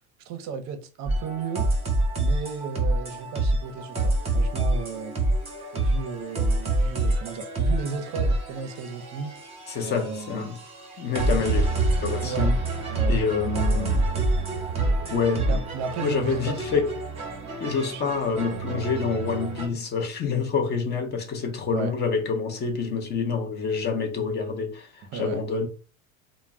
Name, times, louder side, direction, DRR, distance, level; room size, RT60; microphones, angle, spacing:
voice 1, 0.2-1.7 2.2-5.2 5.7-9.3 9.8-10.6 12.2-12.5 12.9-14.0 15.5-16.6 17.9-18.1 19.6-19.8 21.7-21.9 25.0-25.4, right 5 dB, 45° right, 0.6 m, -35 dB
sound 1, 1.1-19.7, right 2 dB, 15° right, 0.9 m, -27 dB
voice 2, 9.7-10.6 11.0-11.7 12.0-12.6 13.1-14.0 15.1-15.6 16.0-16.9 17.6-25.7, left 5 dB, 25° left, 0.5 m, -27 dB
2.1 x 2.1 x 3.5 m
supercardioid pair, 120°, 38 cm